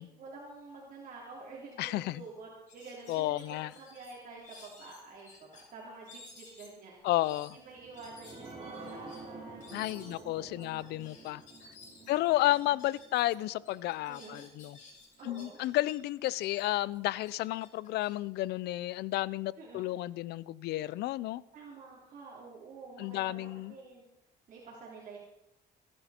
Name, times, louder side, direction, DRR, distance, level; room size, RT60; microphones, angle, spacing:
voice 1, 0.0-1.9 2.2-7.1 7.5-10.9 12.0-12.4 14.1-14.4 15.2-15.6 19.6-19.9 21.5-24.0 24.5-25.2, right 3 dB, 50° right, 3.6 m, -49 dB
sound 1, 1.7-1.8 2.1-2.3 2.7-5.6 6.0-13.4 13.6-15.9 16.3-19.2, left 3 dB, 45° left, 6.4 m, -55 dB
voice 2, 1.8-2.2 3.1-3.7 7.0-7.6 9.7-11.4 12.1-14.8 15.2-21.4 23.0-23.7, left 16 dB, 75° left, 0.5 m, -32 dB
sound 2, 7.6-14.7 15.1-15.2 15.6-15.7, right 3 dB, 35° right, 4.4 m, -50 dB
22.5 x 11.0 x 4.4 m
cardioid pair, 110°, 17 cm